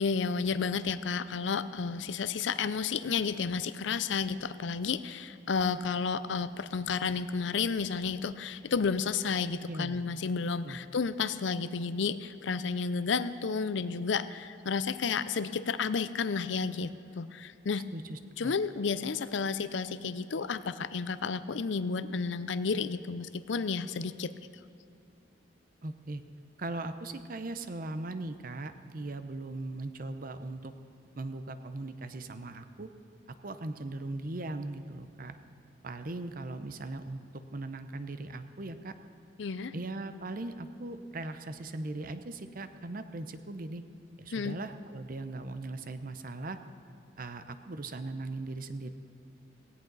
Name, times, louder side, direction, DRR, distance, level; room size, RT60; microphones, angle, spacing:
voice 1, 0.0-16.9 17.2-17.8 18.4-24.3 39.4-39.7 44.3-44.6, left 5 dB, 70° left, 14 dB, 0.5 m, -31 dB
voice 2, 9.7-10.0 10.6-10.8 17.9-18.6 25.8-26.2 26.6-30.7 31.2-32.9 33.3-35.4 35.8-38.9 39.7-43.8 44.2-46.6 47.2-48.9, right 2 dB, 45° right, 10 dB, 0.7 m, -39 dB
17.0 x 17.0 x 4.0 m, 2.8 s
head